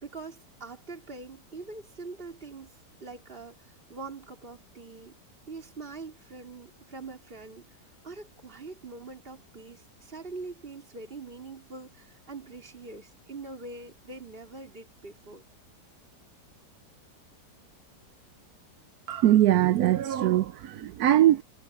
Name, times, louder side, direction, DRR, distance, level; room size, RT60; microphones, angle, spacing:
voice 1, 0.0-5.1 5.5-15.5, right 3 dB, 30° right, 3.7 m, -43 dB
voice 2, 19.1-21.4, right 12 dB, 70° right, 1.0 m, -22 dB
omnidirectional pair, 1.8 m